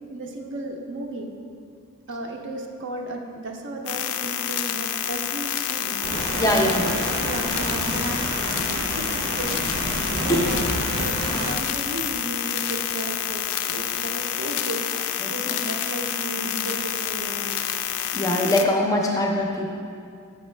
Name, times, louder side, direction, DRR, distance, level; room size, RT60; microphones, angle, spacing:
voice 1, 0.1-1.3 2.1-6.0 7.2-8.2 8.6-9.6 10.2-17.6, right 1 dB, 55° right, 2 dB, 0.6 m, -34 dB
sound 1, 3.9-18.6, left 10 dB, 75° left, 0.4 m, -28 dB
sound 2, 6.0-11.5, right 1 dB, 85° right, 0.9 m, -29 dB
voice 2, 6.4-7.0 10.3-10.5 15.2-15.6 18.1-19.7, left 1 dB, 15° left, 0 dB, 0.5 m, -22 dB
6.7 x 5.3 x 3.2 m, 2.4 s
head